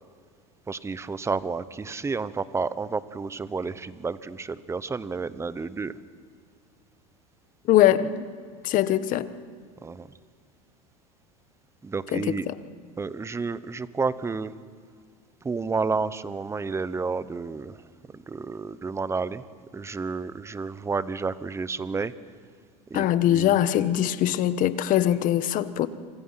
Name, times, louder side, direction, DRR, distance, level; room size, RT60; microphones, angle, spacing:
voice 1, 0.7-5.9 9.8-10.1 11.8-12.5 13.0-14.5 15.4-17.8 18.1-19.4 19.7-22.1 22.9-23.5, right 4 dB, 15° right, 16 dB, 1.0 m, -30 dB
voice 2, 7.6-8.3 8.6-9.3 12.1-12.5 22.9-25.9, left 12 dB, 50° left, 13 dB, 1.4 m, -22 dB
28.5 x 26.0 x 5.9 m, 2.1 s
supercardioid pair, 110°, 17 cm